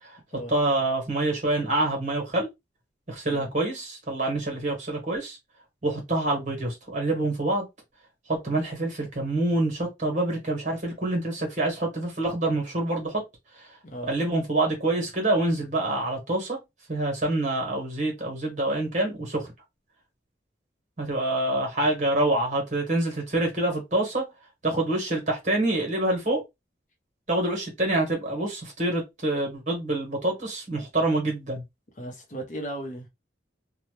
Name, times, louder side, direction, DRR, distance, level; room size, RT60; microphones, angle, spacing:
voice 1, 0.5-2.5 3.1-5.4 5.8-7.7 8.3-13.2 13.6-13.7 14.1-16.6 16.9-19.5 21.0-24.2 24.6-26.4 27.3-31.6, right 2 dB, 40° right, 1.4 m, -26 dB
voice 2, 32.0-33.1, right 1 dB, 45° left, 0.8 m, -36 dB
2.8 x 2.3 x 3.2 m
head